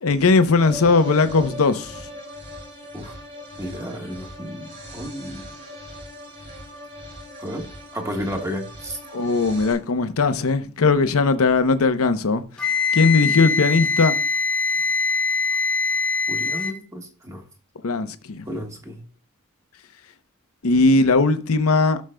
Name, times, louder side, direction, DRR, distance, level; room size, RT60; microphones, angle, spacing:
voice 1, 0.0-2.0 9.1-12.4 12.9-14.1 17.8-18.4 20.6-22.0, left 3 dB, 70° left, 0.7 m, -19 dB
sound 1, 0.5-9.7, equal, 40° right, 5.3 m, -39 dB
voice 2, 3.6-5.5 7.4-7.7 7.9-9.0 16.3-17.4 18.5-19.0, equal, 15° right, 1.4 m, -32 dB
Wind instrument woodwind instrument, 12.6-16.8, left 4 dB, 5° left, 0.9 m, -23 dB
16.0 x 6.4 x 2.2 m
head